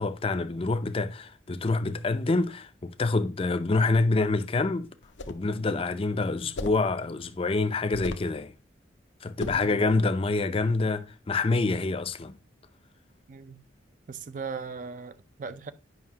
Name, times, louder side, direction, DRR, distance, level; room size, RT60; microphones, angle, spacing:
voice 1, 0.0-4.9 5.3-8.5 9.2-12.4, left 3 dB, 30° left, 0.5 m, -26 dB
sound 1, 5.0-5.5 6.6-6.9 7.9-8.3 9.4-9.7, left 2 dB, 75° left, 0.7 m, -36 dB
voice 2, 9.5-10.0 13.3-13.6 14.1-15.7, right 5 dB, 45° right, 0.4 m, -39 dB
9.4 x 5.6 x 2.8 m
head